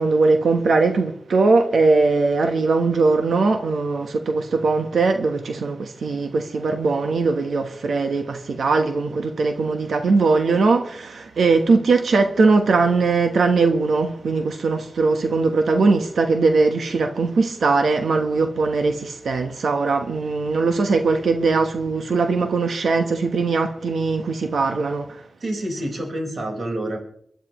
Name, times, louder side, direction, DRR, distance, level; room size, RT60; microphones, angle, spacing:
voice 1, 0.0-25.2, right 3 dB, 85° right, 1.1 m, -20 dB
voice 2, 25.4-27.0, right 1 dB, 65° right, 4.6 m, -27 dB
23.0 x 11.5 x 3.1 m
cardioid pair, 70°, 0 cm